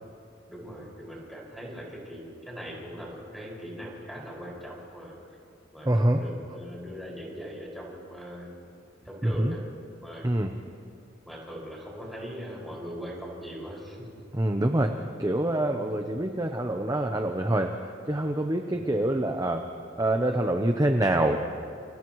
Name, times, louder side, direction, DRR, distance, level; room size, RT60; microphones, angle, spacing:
voice 1, 0.5-5.1 5.7-8.5 9.0-9.6 10.0-10.5 11.3-14.1 15.7-16.0 18.7-19.0, equal, ahead, -4 dB, 5.8 m, -40 dB
voice 2, 5.9-6.2 9.2-9.5 10.2-10.5 14.3-14.9 15.2-19.7 20.0-21.4, right 1 dB, 20° right, 4 dB, 0.8 m, -25 dB
29.5 x 29.0 x 3.1 m, 2.4 s
head